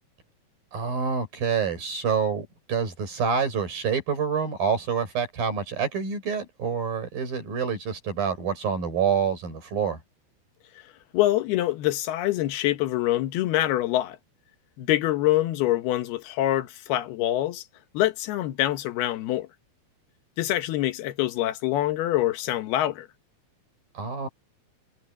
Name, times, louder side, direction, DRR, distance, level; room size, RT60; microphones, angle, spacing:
voice 1, 0.7-10.0 24.0-24.3, right 6 dB, 65° right, 7.4 m, -27 dB
voice 2, 11.1-14.2 14.8-17.6 17.9-19.5 20.4-23.1, left 14 dB, 85° left, 3.2 m, -25 dB
omnidirectional pair, 4.4 m